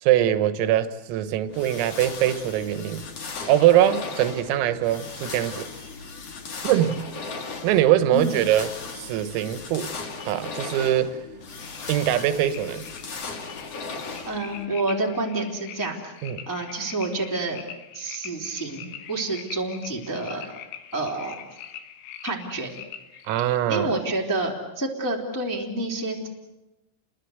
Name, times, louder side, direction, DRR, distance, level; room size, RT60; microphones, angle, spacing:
voice 1, 0.0-3.1 3.5-5.7 6.6-7.0 7.6-9.9 10.3-11.2 11.9-12.9 16.2-16.5 23.3-23.9, right 12 dB, 85° right, 4.0 m, -22 dB
sound 1, 1.5-14.7, left 4 dB, 45° left, 2.3 m, -37 dB
sound 2, 11.6-23.6, left 9 dB, 75° left, 4.1 m, -43 dB
voice 2, 14.3-16.2 16.4-17.6 17.9-20.5 20.9-21.4 22.2-22.7 23.7-26.3, right 2 dB, 5° left, 2.4 m, -28 dB
30.0 x 22.0 x 8.1 m
omnidirectional pair, 6.0 m